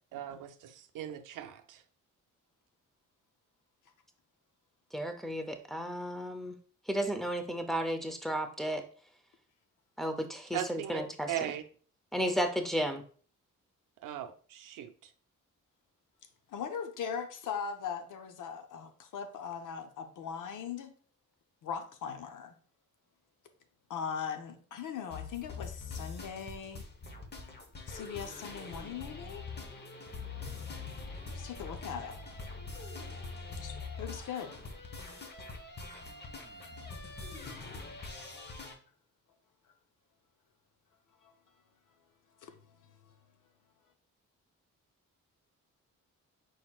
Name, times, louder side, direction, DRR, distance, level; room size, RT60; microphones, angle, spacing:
voice 1, 0.1-1.8 10.5-11.0 11.3-11.6 14.0-14.9, right 10 dB, 80° right, 0.6 m, -38 dB
voice 2, 4.9-6.5 6.9-8.8 10.0-11.3 12.1-13.0, equal, ahead, 0.6 m, -33 dB
voice 3, 16.5-20.9 21.6-22.6 23.9-26.8 27.9-29.4 31.3-32.2 33.6-34.6 41.2-41.3 42.4-42.5, left 7 dB, 75° left, 0.7 m, -40 dB
sound 1, 25.1-38.7, left 4 dB, 30° left, 0.9 m, -43 dB
4.6 x 4.3 x 2.3 m
cardioid pair, 90°, 31 cm